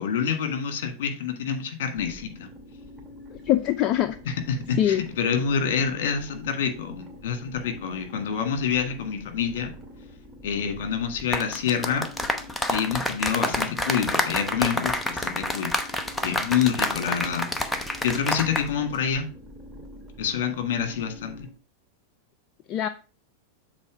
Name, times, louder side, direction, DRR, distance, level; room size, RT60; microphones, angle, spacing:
voice 1, 0.0-2.5 4.3-9.7 10.4-12.1 12.7-15.7 16.2-17.5 18.0-19.3 20.2-21.5, left 7 dB, 60° left, 6 dB, 1.7 m, -27 dB
sound 1, 1.9-21.5, equal, 10° right, 2.0 m, -46 dB
voice 2, 3.3-4.2 4.8-5.0 22.7-22.9, left 12 dB, 40° left, 12 dB, 0.4 m, -23 dB
sound 2, 11.2-18.7 18.9-19.2, left 1 dB, 10° left, 0.9 m, -28 dB
7.5 x 4.0 x 4.8 m, 0.36 s
hypercardioid pair, 95°, 0 cm